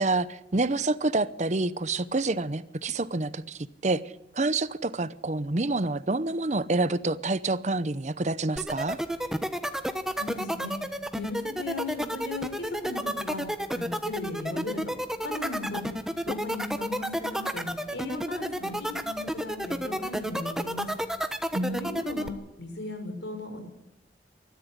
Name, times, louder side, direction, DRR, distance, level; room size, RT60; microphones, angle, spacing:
voice 1, 0.0-4.0 4.3-9.0 21.5-22.0, right 2 dB, 40° right, 16 dB, 0.8 m, -28 dB
sound 1, 8.6-22.3, equal, 5° right, 1.1 m, -30 dB
voice 2, 10.1-10.7 11.1-13.4 13.7-14.8 15.2-15.8 16.2-20.9 21.7-23.6, left 3 dB, 90° left, 5 dB, 6.1 m, -37 dB
21.0 x 14.0 x 9.7 m, 0.85 s
head